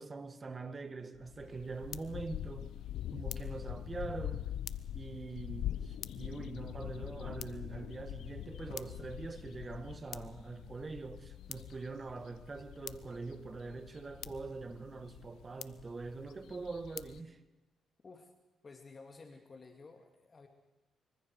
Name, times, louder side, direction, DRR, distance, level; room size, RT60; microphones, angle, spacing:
voice 1, 0.0-2.7 3.1-4.5 4.9-17.4, right 3 dB, 30° right, 2.1 m, -43 dB
sound 1, 1.1-17.2, left 11 dB, 75° left, 0.8 m, -44 dB
voice 2, 18.6-20.5, left 4 dB, 35° left, 2.4 m, -53 dB
25.5 x 24.0 x 4.8 m
cardioid pair, 90°, 0 cm